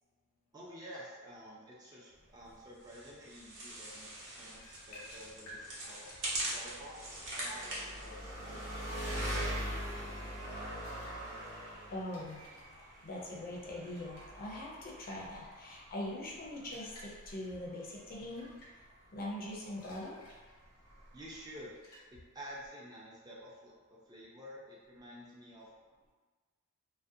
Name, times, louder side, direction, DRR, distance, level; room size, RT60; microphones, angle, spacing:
voice 1, 0.5-6.1 6.4-7.0 7.3-10.1 21.1-21.7 22.1-25.7, equal, 15° right, -5 dB, 0.4 m, -51 dB
Engine, 2.1-21.7, equal, 90° right, 0.9 m, -44 dB
sound 1, 2.8-9.2, right 1 dB, 60° right, 0.7 m, -43 dB
sound 2, 4.5-22.7, left 1 dB, 85° left, 0.7 m, -57 dB
voice 2, 11.9-12.4 12.7-18.5 19.1-20.2, left 1 dB, 40° left, -4 dB, 0.5 m, -42 dB
2.4 x 2.1 x 2.6 m, 1.4 s
head